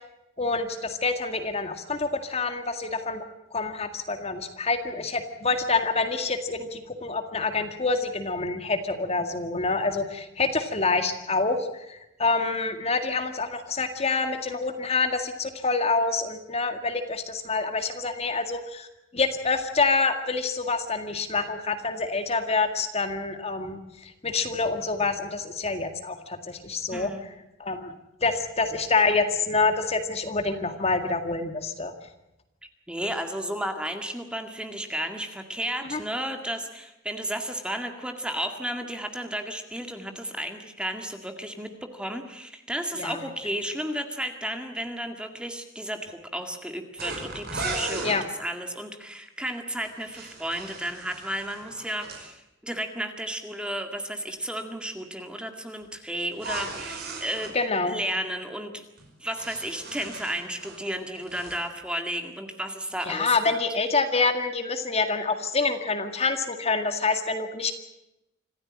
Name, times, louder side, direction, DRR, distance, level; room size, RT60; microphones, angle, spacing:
voice 1, 0.4-3.2 3.5-18.9 19.1-27.1 27.6-27.9 28.2-31.9 35.9-36.0 43.0-43.2 48.0-48.2 57.5-58.0 63.1-67.7, left 3 dB, 30° left, 7 dB, 2.0 m, -27 dB
voice 2, 26.9-27.2 32.9-57.6 57.8-58.8 59.2-63.5, equal, 5° right, 5 dB, 2.0 m, -33 dB
sound 1, 47.0-48.2 49.8-52.2 56.3-57.5 59.0-60.9 61.2-61.6, right 3 dB, 55° right, 5.6 m, -37 dB
26.5 x 15.0 x 8.7 m, 0.89 s
head